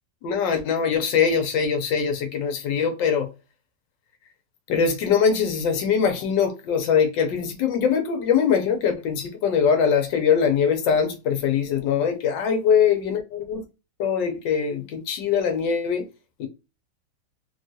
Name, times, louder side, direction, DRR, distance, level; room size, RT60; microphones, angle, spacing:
voice 1, 0.2-3.3 4.7-13.6 14.0-16.1 16.4-16.5, left 7 dB, 80° left, 1.4 m, -22 dB
3.4 x 2.3 x 2.6 m
omnidirectional pair, 2.0 m